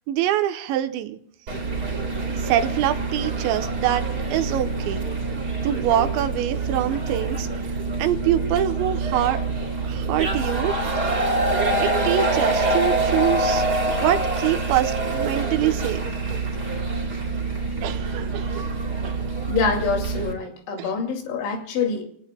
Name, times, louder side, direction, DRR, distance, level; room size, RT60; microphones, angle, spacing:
voice 1, 0.1-1.2 2.3-5.0 5.6-9.4 9.8-10.7 11.8-16.1 17.8-18.6 19.0-19.2 20.8-20.9, right 11 dB, 80° right, 8 dB, 3.2 m, -25 dB
sound 1, 1.5-20.3, right 3 dB, 25° right, 3.1 m, -25 dB
voice 2, 19.5-22.1, left 5 dB, 80° left, 3 dB, 4.9 m, -25 dB
29.5 x 17.5 x 2.3 m, 0.70 s
omnidirectional pair, 5.2 m